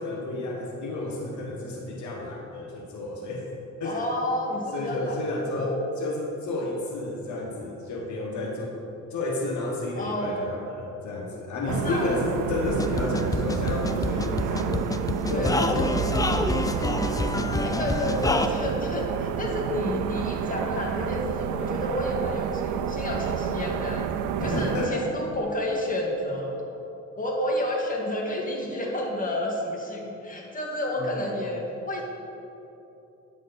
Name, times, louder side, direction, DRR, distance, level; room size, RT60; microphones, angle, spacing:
voice 1, 0.0-3.5 3.8-4.1 4.7-8.8 9.1-14.9 15.3-17.5 24.4-25.2 30.9-31.3, left 2 dB, 70° left, -1 dB, 1.3 m, -31 dB
voice 2, 3.8-5.2 5.5-5.8 10.0-10.4 11.6-12.2 15.3-15.6 17.6-24.1 24.4-26.5 27.2-32.0, left 1 dB, 25° left, -1 dB, 1.8 m, -30 dB
sound 1, 11.7-24.9, right 9 dB, 90° right, 0.5 m, -30 dB
sound 2, 12.6-18.5, left 2 dB, 10° left, 0.4 m, -27 dB
9.8 x 7.6 x 4.1 m, 2.9 s
cardioid pair, 90°, 30 cm